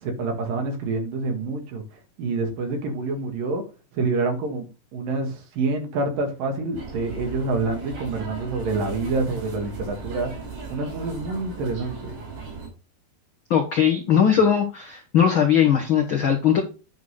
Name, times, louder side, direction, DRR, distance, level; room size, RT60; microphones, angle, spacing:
voice 1, 0.0-1.8 2.2-3.6 4.0-4.7 4.9-10.3 10.7-12.1, right 3 dB, 70° right, 3.4 m, -27 dB
sound 1, 6.7-12.7, right 4 dB, 90° right, 5.6 m, -37 dB
voice 2, 13.5-16.6, left 8 dB, 70° left, 1.2 m, -19 dB
9.3 x 3.9 x 6.4 m
omnidirectional pair, 4.2 m